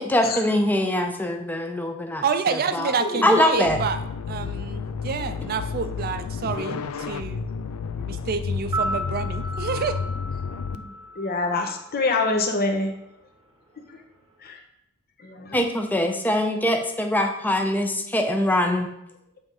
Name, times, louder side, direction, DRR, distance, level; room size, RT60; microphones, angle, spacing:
voice 1, 0.0-2.9 3.2-3.8 15.5-18.9, left 1 dB, 10° left, 4 dB, 0.6 m, -23 dB
voice 2, 2.2-4.0 4.3-7.5 8.1-10.0, right 5 dB, 45° right, 10 dB, 0.4 m, -28 dB
sound 1, 3.7-10.8, left 5 dB, 85° left, 0.4 m, -31 dB
sound 2, 8.6-12.7 13.0-13.1, right 1 dB, 25° right, 1.0 m, -34 dB
voice 3, 11.2-12.9 14.4-14.6 15.2-15.6, left 3 dB, 45° left, 3 dB, 0.9 m, -26 dB
7.9 x 3.5 x 5.4 m, 0.82 s
head